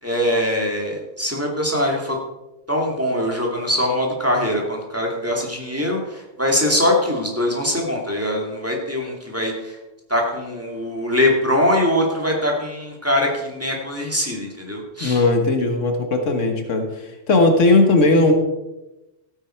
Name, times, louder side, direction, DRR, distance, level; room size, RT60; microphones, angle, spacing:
voice 1, 0.0-2.2 2.7-9.8 10.1-15.2, left 1 dB, 10° right, -1 dB, 2.4 m, -22 dB
voice 2, 15.0-16.8 17.3-18.3, left 2 dB, 75° left, 5 dB, 1.7 m, -17 dB
15.0 x 9.0 x 4.5 m, 0.99 s
omnidirectional pair, 1.3 m